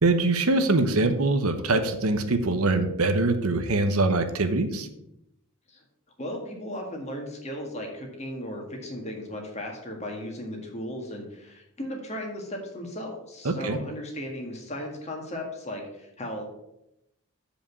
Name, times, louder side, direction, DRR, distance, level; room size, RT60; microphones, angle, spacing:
voice 1, 0.0-4.9 13.4-13.8, right 2 dB, 80° right, 8 dB, 1.0 m, -23 dB
voice 2, 6.2-16.4, left 1 dB, 30° left, 2 dB, 1.7 m, -36 dB
7.6 x 5.1 x 7.2 m, 0.85 s
head